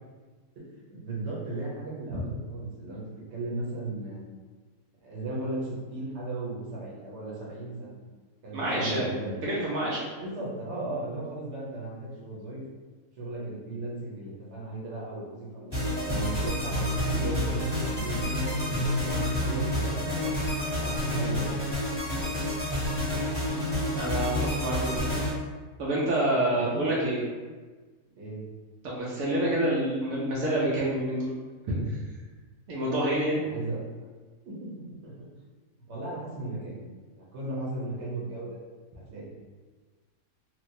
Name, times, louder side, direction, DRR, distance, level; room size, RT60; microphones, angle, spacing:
voice 1, 0.9-2.2 2.5-3.0 3.3-4.2 5.0-8.0 8.4-9.5 10.2-12.6 13.2-15.8 16.0-21.7 26.5-26.8 28.2-28.4 33.4-33.8 34.4-34.7 35.0-35.1 35.9-36.8 37.1-38.6 39.1-39.3, right 2 dB, 55° right, -5 dB, 1.1 m, -36 dB
voice 2, 8.5-9.1 9.4-10.0 24.0-25.1 25.8-27.2 28.8-31.3 31.7-31.8 32.7-33.5, right 1 dB, 80° right, -6 dB, 1.1 m, -27 dB
sound 1, 15.7-25.3, left 1 dB, 20° right, 1.1 m, -29 dB
3.0 x 2.5 x 2.7 m, 1.3 s
omnidirectional pair, 1.5 m